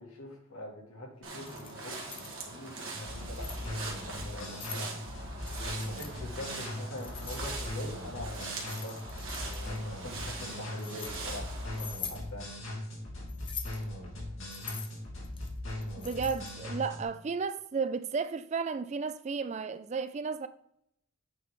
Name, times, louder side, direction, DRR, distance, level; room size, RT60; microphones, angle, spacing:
voice 1, 0.0-4.9 5.5-11.5 11.9-12.5, left 1 dB, 85° left, 2.2 m, -45 dB
sound 1, 1.2-11.9, right 3 dB, 60° right, 1.8 m, -42 dB
Keys jangling, 1.3-2.4 3.1-3.7 4.3-4.9 5.4-6.1 7.0-7.8 8.3-9.8 10.4-11.2 11.7-12.2 13.3-13.8 14.5-16.6, left 6 dB, 25° left, 0.6 m, -44 dB
sound 2, 2.9-17.0, left 1 dB, 65° left, 2.7 m, -39 dB
voice 2, 16.0-20.5, right 5 dB, 30° right, 0.3 m, -33 dB
8.1 x 4.9 x 3.7 m
head